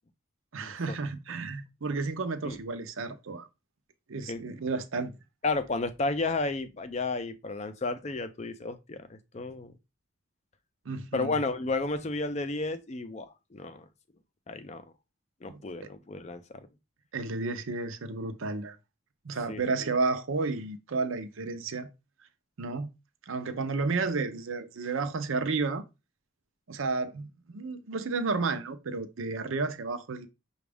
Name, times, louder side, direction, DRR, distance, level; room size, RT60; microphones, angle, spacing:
voice 1, 0.5-3.5 4.1-5.1 10.9-11.4 15.5-15.6 17.1-18.8 19.2-21.9 22.6-22.9 23.3-25.8 26.7-30.3, right 3 dB, 75° right, 0.6 m, -32 dB
voice 2, 5.4-9.7 11.1-13.9 14.5-14.8 15.4-16.7 19.5-19.6, left 3 dB, 30° left, 0.4 m, -32 dB
6.0 x 2.4 x 3.4 m
head